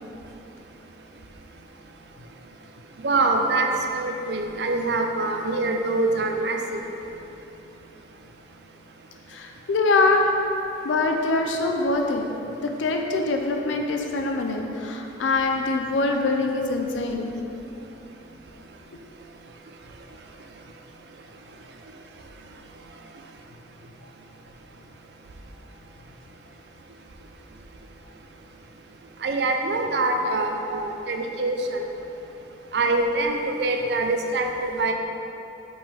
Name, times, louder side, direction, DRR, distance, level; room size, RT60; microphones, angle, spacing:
voice 1, 3.0-6.8 29.2-31.9 32.7-34.9, right 2 dB, 60° right, 3 dB, 0.5 m, -24 dB
voice 2, 9.3-10.3 10.8-12.2 12.6-17.4, left 3 dB, 85° left, 3 dB, 0.4 m, -24 dB
5.2 x 5.1 x 3.6 m, 3.0 s
head